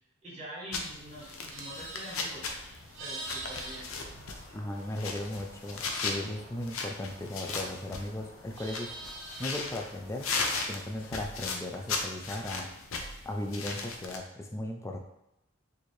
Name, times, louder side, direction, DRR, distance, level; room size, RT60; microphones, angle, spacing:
voice 1, 0.2-3.9, equal, 35° right, -6 dB, 1.5 m, -45 dB
sound 1, 0.7-14.2, left 4 dB, 75° left, 0.5 m, -37 dB
Livestock farm animals working animals, 1.4-5.0 5.3-7.8 8.1-9.7, right 2 dB, 60° right, 0.7 m, -45 dB
sound 2, 2.3-11.3, equal, 5° right, 1.2 m, -57 dB
voice 2, 4.5-8.9 9.4-10.3 10.7-12.7 13.3-15.0, left 1 dB, 15° left, 2 dB, 0.3 m, -37 dB
4.3 x 2.6 x 3.1 m, 0.86 s
head